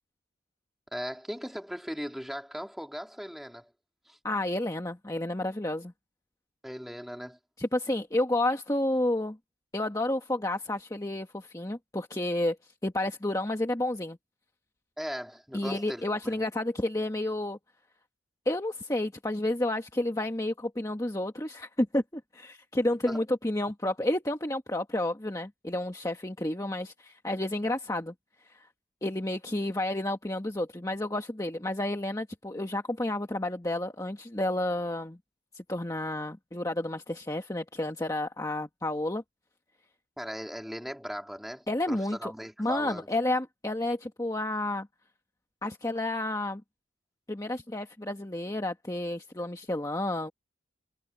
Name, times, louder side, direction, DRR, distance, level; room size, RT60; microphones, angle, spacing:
voice 1, 0.9-3.7 4.1-4.2 6.6-7.4 15.0-16.3 23.1-23.2 40.2-43.1, equal, ahead, 3.2 m, -38 dB
voice 2, 4.2-5.9 7.6-9.4 9.7-12.6 12.8-14.2 15.5-17.6 18.4-28.1 28.4-28.7 29.0-35.2 35.5-39.2 41.7-42.3 42.6-44.9 45.6-46.6 47.3-50.3, left 1 dB, 15° left, 1.4 m, -30 dB
head